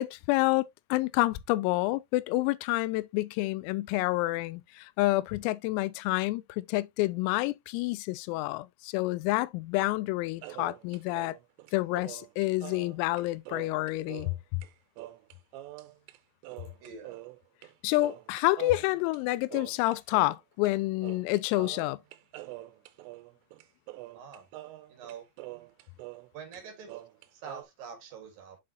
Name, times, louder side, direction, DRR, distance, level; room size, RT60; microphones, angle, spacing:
voice 1, 0.0-11.4 11.7-14.6 17.8-22.0, left 19 dB, 85° left, 3.3 m, -28 dB
sound 1, 10.4-14.4 14.6-14.7 15.0-16.2 16.4-17.7 18.0-20.4 20.7-20.8 21.0-26.3 26.5-27.6, right 17 dB, 85° right, 3.2 m, -45 dB
voice 2, 16.8-17.2 24.1-24.5 24.9-25.3 26.3-27.0 27.3-28.6, right 6 dB, 55° right, 2.9 m, -45 dB
7.6 x 5.6 x 2.8 m
omnidirectional pair, 6.0 m